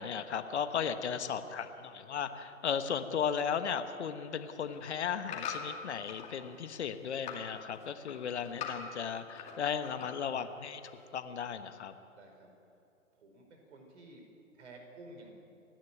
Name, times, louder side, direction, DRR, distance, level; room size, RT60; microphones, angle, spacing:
voice 1, 0.0-10.8 11.1-11.9, left 7 dB, 55° left, 9 dB, 1.3 m, -35 dB
voice 2, 1.0-1.4 9.8-10.4 12.1-12.5 13.1-14.2 14.5-15.4, right 2 dB, 55° right, 3 dB, 5.2 m, -54 dB
sound 1, 4.5-6.3 6.7-7.5 7.8-9.6 9.8-10.4 10.9-11.0, left 7 dB, 15° left, 2.4 m, -42 dB
29.0 x 11.0 x 9.2 m, 2.7 s
figure-of-eight pair, 130°, 41 cm